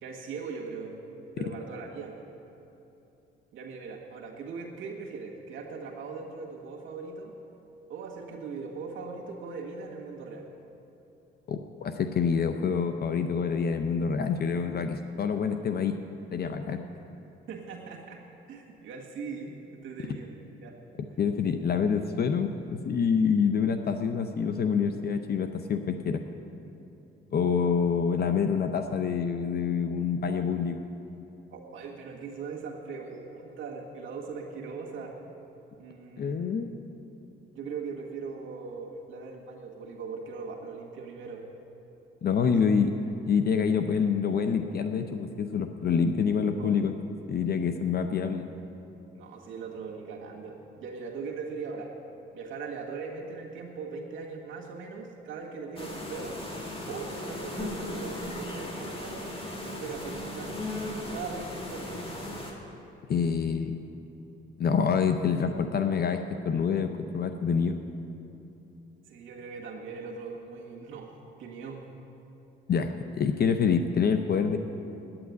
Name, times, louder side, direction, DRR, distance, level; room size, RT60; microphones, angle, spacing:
voice 1, 0.0-0.9 1.4-2.1 3.5-7.3 7.9-10.5 17.5-18.2 18.5-20.3 20.6-20.7 31.5-35.2 35.8-36.4 37.5-41.5 42.4-42.6 46.5-46.7 49.1-51.9 52.3-56.4 56.9-59.2 59.6-60.6 61.1-62.1 69.1-71.8, right 5 dB, 80° right, -1 dB, 1.6 m, -40 dB
voice 2, 11.5-16.0 16.3-16.8 21.2-26.2 27.3-30.8 36.2-36.7 42.2-42.9 43.3-46.9 47.3-48.5 63.1-63.8 64.6-67.8 72.7-74.6, left 6 dB, 50° left, 7 dB, 0.7 m, -26 dB
sound 1, 55.8-62.5, left 1 dB, 30° left, 2.0 m, -37 dB
9.2 x 8.8 x 9.4 m, 3.0 s
cardioid pair, 90°, 20 cm